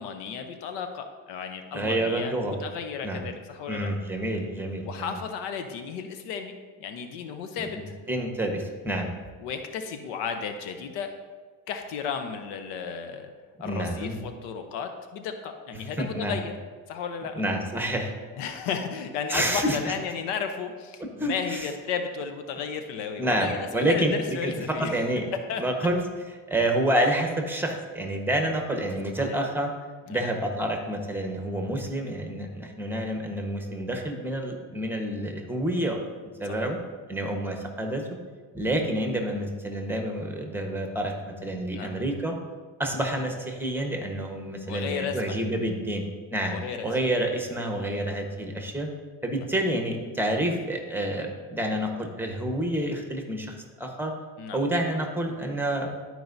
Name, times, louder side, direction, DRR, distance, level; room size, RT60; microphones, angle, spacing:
voice 1, 0.0-3.9 4.9-8.0 9.4-11.2 11.7-13.3 13.6-16.5 16.9-17.4 18.4-25.0 25.3-25.6 29.2-29.4 30.1-30.2 36.4-36.7 41.7-41.9 44.7-45.4 46.5-46.9 47.7-47.9 49.4-49.5 54.4-54.6, left 6 dB, 80° left, 7 dB, 0.8 m, -34 dB
voice 2, 1.7-2.6 3.0-3.3 3.7-5.2 7.6-7.8 8.1-9.1 13.6-14.2 16.0-16.4 17.4-18.1 19.3-19.9 21.2-21.6 23.2-24.5 24.8-25.2 25.6-26.0 26.5-29.7 30.1-36.0 36.4-36.8 37.1-38.0 38.5-42.4 42.8-46.0 46.3-46.6 46.8-48.9 49.2-54.1 54.5-55.9, right 1 dB, 5° right, 2 dB, 1.2 m, -28 dB
12.0 x 4.6 x 2.7 m, 1.4 s
supercardioid pair, 85°, 41 cm